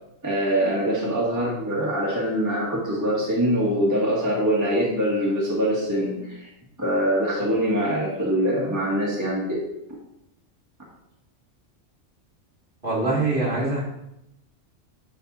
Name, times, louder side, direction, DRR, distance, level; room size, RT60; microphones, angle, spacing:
voice 1, 0.2-6.5 6.8-9.6, equal, 15° right, -5 dB, 1.7 m, -23 dB
voice 2, 12.8-13.8, right 2 dB, 45° right, -6 dB, 2.2 m, -23 dB
11.0 x 4.1 x 4.0 m, 0.84 s
omnidirectional pair, 1.3 m